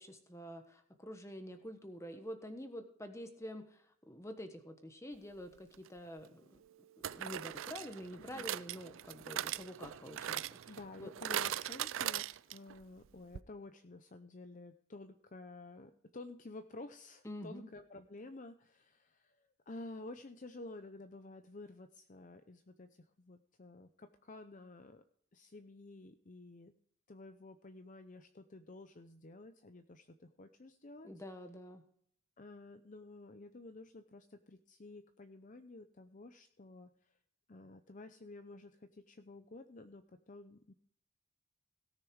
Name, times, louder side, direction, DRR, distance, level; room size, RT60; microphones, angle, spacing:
voice 1, 0.0-6.6 7.1-10.7 11.0-11.1 17.2-17.7 31.0-31.8, equal, 15° left, 7 dB, 1.2 m, -47 dB
sound 1, 5.7-5.9 7.0-12.8 13.0-13.1 13.3-13.4, right 11 dB, 65° right, 0.4 m, -40 dB
voice 2, 10.7-25.0 25.3-26.7 27.1-31.1 32.4-37.2 37.5-40.7, left 2 dB, 35° left, 8 dB, 0.6 m, -52 dB
17.5 x 6.6 x 4.7 m, 0.63 s
head